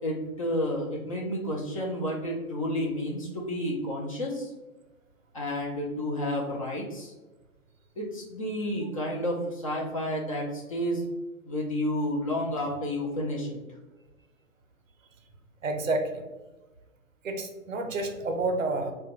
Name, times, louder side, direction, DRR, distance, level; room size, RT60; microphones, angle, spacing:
voice 1, 0.0-4.5 5.3-7.1 8.0-11.0 11.5-13.6, left 1 dB, 25° left, -3 dB, 0.4 m, -31 dB
voice 2, 15.6-16.2 17.2-18.9, right 2 dB, 65° right, 5 dB, 0.7 m, -29 dB
4.0 x 2.2 x 3.0 m, 1.1 s
figure-of-eight pair, 120°, 42 cm